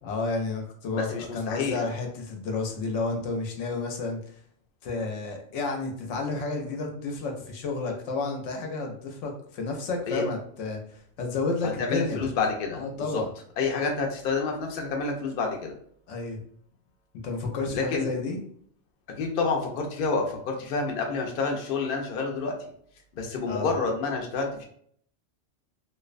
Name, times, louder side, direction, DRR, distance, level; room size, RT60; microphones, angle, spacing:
voice 1, 0.0-4.3 4.8-12.3 12.7-13.3 16.1-16.4 17.2-18.4 23.5-23.8, left 3 dB, 80° left, 2 dB, 0.9 m, -31 dB
voice 2, 1.0-1.8 10.1-10.2 11.8-13.2 13.6-15.7 17.7-18.1 19.2-22.7 23.1-24.6, left 4 dB, 60° left, 1 dB, 0.6 m, -28 dB
2.5 x 2.1 x 2.4 m, 0.62 s
omnidirectional pair, 1.3 m